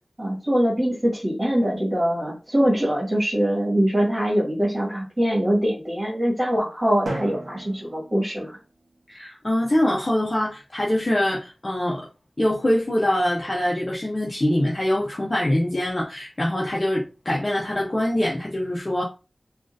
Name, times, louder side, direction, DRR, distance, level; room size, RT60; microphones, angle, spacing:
voice 1, 0.2-8.6, equal, 30° right, -5 dB, 1.6 m, -23 dB
Drum, 7.1-9.0, right 1 dB, 90° right, 0.7 m, -35 dB
voice 2, 9.1-12.0 12.4-19.0, left 1 dB, 35° left, -3 dB, 0.7 m, -24 dB
3.7 x 2.4 x 2.5 m, 0.32 s
wide cardioid pair, 75°, 0 cm